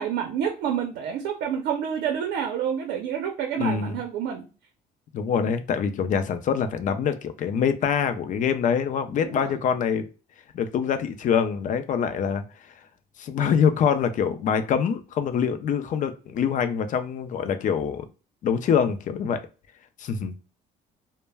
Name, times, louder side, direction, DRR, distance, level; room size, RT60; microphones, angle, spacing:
voice 1, 0.0-4.4 9.2-9.6, right 8 dB, 75° right, 4 dB, 0.6 m, -28 dB
voice 2, 3.6-4.0 5.1-10.0 10.5-12.7 13.2-18.0 18.4-19.4 20.0-20.3, left 7 dB, 50° left, 9 dB, 0.4 m, -25 dB
2.1 x 2.1 x 3.3 m, 0.34 s
cardioid pair, 110°, 17 cm